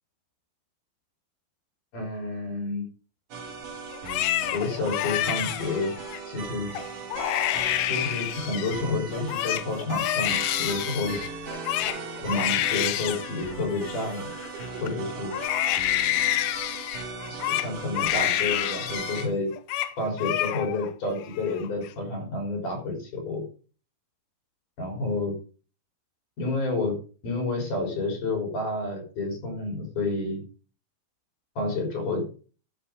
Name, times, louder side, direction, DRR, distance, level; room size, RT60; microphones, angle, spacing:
voice 1, 1.9-2.8 4.5-5.9 6.3-6.7 7.9-11.2 12.2-14.3 14.8-15.4 17.3-19.5 20.0-23.4 24.8-25.4 26.4-27.0 27.2-30.4 31.6-32.3, left 3 dB, 60° left, 0 dB, 5.4 m, -29 dB
sound 1, 3.3-19.3, right 4 dB, 60° right, 3.7 m, -38 dB
Crying sobbing, 3.9-6.2 6.7-6.9 7.1-8.8 9.1-14.9 15.3-19.3 19.5-19.9 20.2-20.9 21.3-21.9, left 13 dB, 80° left, 2.4 m, -28 dB
14.5 x 7.4 x 3.8 m, 0.37 s
omnidirectional pair, 4.2 m